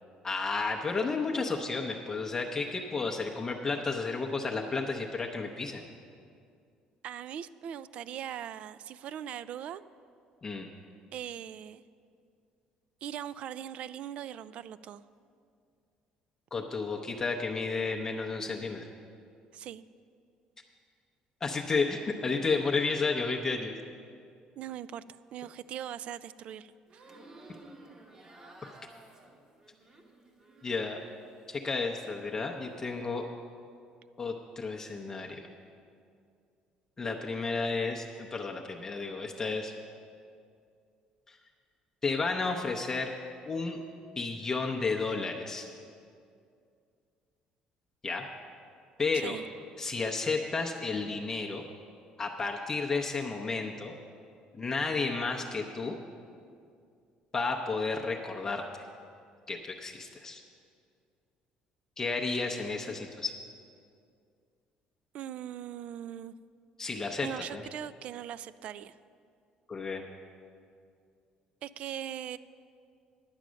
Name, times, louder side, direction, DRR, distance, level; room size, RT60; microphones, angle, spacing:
voice 1, 0.2-5.8 10.4-10.7 16.5-18.9 21.4-23.7 28.6-28.7 30.6-31.0 31.5-33.2 34.2-35.4 37.0-39.7 41.3-41.4 42.0-43.1 43.4-43.8 44.2-45.7 48.0-48.3 49.0-49.4 49.8-51.6 52.2-53.9 54.6-56.0 57.3-58.9 59.5-60.4 62.0-63.3 66.8-67.6 69.7-70.0, left 4 dB, 20° left, 1 dB, 0.7 m, -32 dB
voice 2, 7.0-9.8 11.1-11.8 13.0-15.0 19.5-19.8 24.6-25.0 25.3-27.2 49.1-49.4 65.1-66.4 67.2-68.9 71.6-72.4, right 10 dB, 55° right, 16 dB, 0.3 m, -40 dB
sound 1, 26.9-31.3 31.6-32.4, right 2 dB, 25° right, 1.1 m, -54 dB
10.5 x 8.9 x 6.3 m, 2.3 s
cardioid pair, 145°, 2 cm